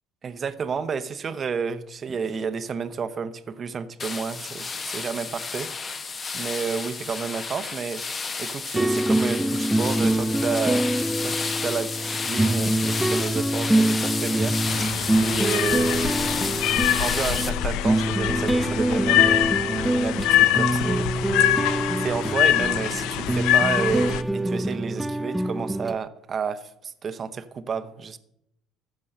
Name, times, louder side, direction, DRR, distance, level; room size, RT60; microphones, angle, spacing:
voice 1, 0.2-5.7 6.3-8.0 8.4-10.9 11.2-14.6 15.2-16.3 16.9-21.1 21.4-21.6 22.0-28.2, right 6 dB, 35° right, 13 dB, 0.8 m, -31 dB
sound 1, 4.0-17.5, left 4 dB, 30° left, 1.1 m, -31 dB
sound 2, 8.7-26.0, right 1 dB, 5° right, 0.4 m, -25 dB
sound 3, 14.7-24.2, left 13 dB, 75° left, 0.6 m, -24 dB
14.0 x 5.4 x 6.5 m, 0.78 s
supercardioid pair, 100°, 0 cm